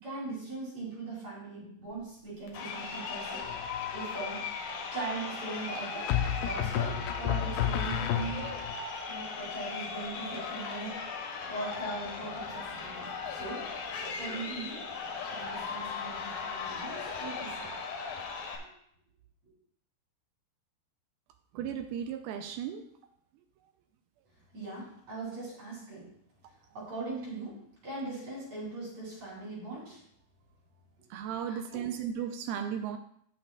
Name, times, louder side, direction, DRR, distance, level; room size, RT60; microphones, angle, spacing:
voice 1, 0.0-3.5 3.9-4.5 4.9-8.5 9.1-11.0 11.5-13.7 14.0-14.8 15.3-17.7 24.5-26.1 26.7-27.6 27.8-30.0 31.5-31.9, right 3 dB, 45° right, -5 dB, 4.1 m, -40 dB
Crowd, 2.5-18.6, left 5 dB, 70° left, 2.8 m, -38 dB
sound 1, 3.4-4.0 6.1-8.7, left 9 dB, 85° left, 2.7 m, -31 dB
voice 2, 21.5-22.8 31.1-33.0, right 8 dB, 85° right, 7 dB, 2.2 m, -35 dB
18.0 x 6.0 x 2.3 m, 0.70 s
omnidirectional pair, 4.7 m